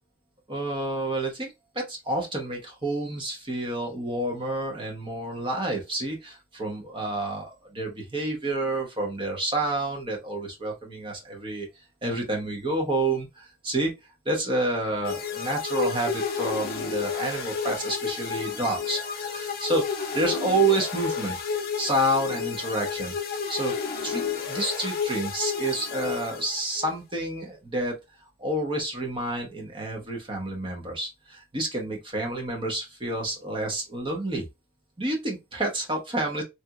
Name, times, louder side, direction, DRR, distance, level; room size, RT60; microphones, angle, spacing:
voice 1, 0.5-11.7 12.0-13.9 14.2-21.4 21.8-23.1 23.5-23.7 24.0-27.9 28.4-34.5 35.0-36.4, right 2 dB, 25° right, 0.8 m, -29 dB
sound 1, 15.0-26.9, left 6 dB, 45° left, 0.6 m, -31 dB
3.3 x 2.9 x 2.4 m
head